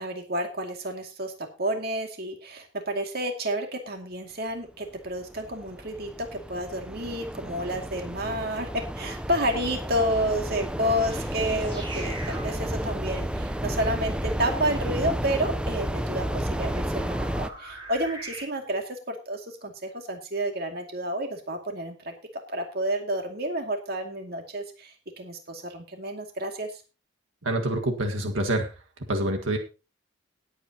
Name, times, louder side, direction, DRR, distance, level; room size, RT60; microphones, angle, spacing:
voice 1, 0.0-22.1 22.5-26.7, right 1 dB, 50° right, 4 dB, 2.3 m, -30 dB
sound 1, 5.1-17.5, equal, 5° right, 0.6 m, -32 dB
sound 2, 11.1-18.4, right 1 dB, 25° right, 7.0 m, -44 dB
voice 2, 27.4-28.7 29.1-29.6, right 1 dB, 90° right, 3 dB, 1.7 m, -26 dB
19.0 x 8.4 x 2.9 m, 0.31 s
head